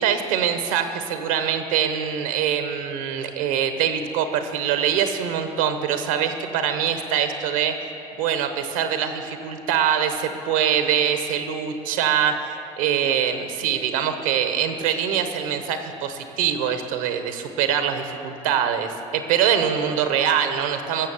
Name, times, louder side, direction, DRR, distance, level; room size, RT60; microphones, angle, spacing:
voice 1, 0.0-7.7 8.2-21.1, right 8 dB, 85° right, 8 dB, 0.9 m, -23 dB
14.5 x 7.0 x 7.0 m, 2.9 s
hypercardioid pair, 60°, 17 cm